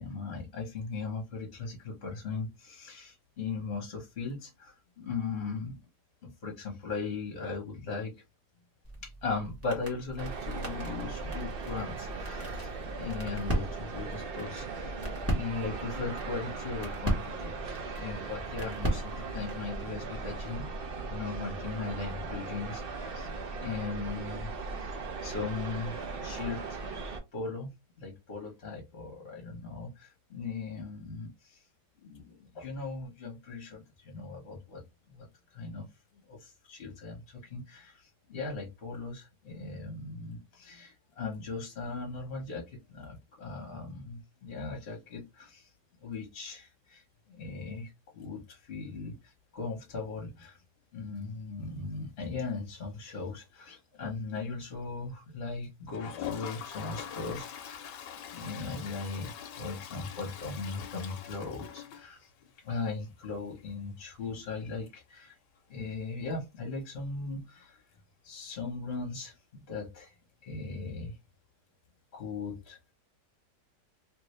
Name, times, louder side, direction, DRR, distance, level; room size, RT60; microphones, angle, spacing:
voice 1, 0.0-5.8 6.2-8.1 9.0-12.7 12.9-15.0 15.3-20.7 21.1-23.3 23.6-24.5 24.8-25.0 25.2-26.8 27.3-27.7 28.0-31.6 32.0-34.8 35.1-35.3 35.5-35.9 36.3-38.0 38.3-45.7 46.0-50.6 50.9-57.9 58.3-59.3 59.6-62.3 62.6-65.4 65.7-67.8 68.2-70.1 70.4-71.1 72.1-72.9, left 4 dB, 40° left, 0 dB, 1.2 m, -38 dB
sound 1, 8.8-19.7, right 1 dB, 10° right, 0.8 m, -38 dB
sound 2, 10.2-27.2, right 3 dB, 60° right, 0.5 m, -38 dB
Toilet flush, 55.9-62.6 62.9-63.0 63.2-63.3 63.6-63.7 66.2-66.3 67.6-67.7, left 9 dB, 80° left, 1.3 m, -43 dB
3.1 x 2.6 x 3.1 m, 0.23 s
omnidirectional pair, 1.9 m